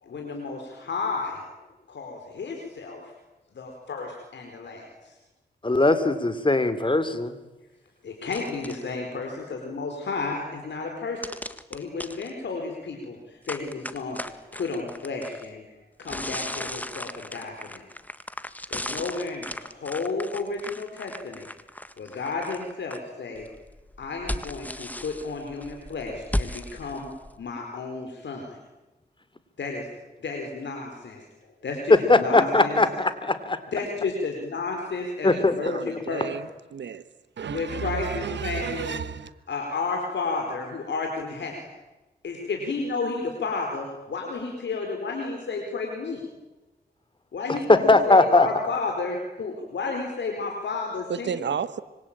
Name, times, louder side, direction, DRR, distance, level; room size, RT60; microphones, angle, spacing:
voice 1, 0.0-1.4 1.9-3.1 3.5-5.2 8.0-11.2 11.7-15.6 16.0-17.8 18.7-21.4 22.0-23.5 24.0-27.1 27.4-28.6 29.6-29.9 30.2-32.8 33.7-36.3 37.5-39.0 39.5-41.7 42.2-46.2 47.3-51.3, left 4 dB, 80° left, 4.6 m, -32 dB
voice 2, 5.6-7.4 32.1-33.6 35.2-35.5 47.7-48.5, left 2 dB, 25° left, 3.1 m, -20 dB
sound 1, 8.3-8.9 11.2-12.3 13.5-15.5 16.0-23.0 23.4-27.4, left 1 dB, 10° left, 1.7 m, -36 dB
voice 3, 35.3-37.0 37.4-39.3 51.1-51.8, right 7 dB, 80° right, 1.4 m, -32 dB
26.0 x 24.0 x 9.0 m
cardioid pair, 60°, 18 cm